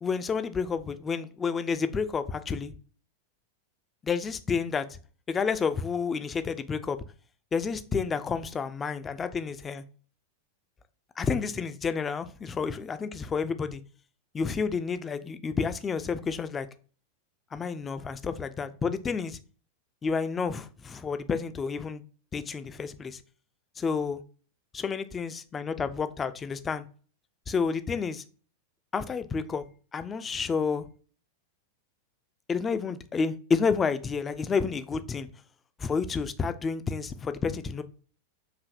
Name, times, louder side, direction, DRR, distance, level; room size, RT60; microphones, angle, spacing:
voice 1, 0.0-2.7 4.0-5.0 5.3-7.0 7.5-9.8 11.2-13.8 14.3-16.7 17.5-19.4 20.0-22.0 22.3-23.2 23.8-24.2 24.7-26.8 27.5-28.2 28.9-29.6 29.9-30.9 32.5-35.3 35.8-37.8, left 5 dB, 20° left, 0.3 m, -30 dB
5.0 x 2.6 x 2.4 m
figure-of-eight pair, 90°, 0 cm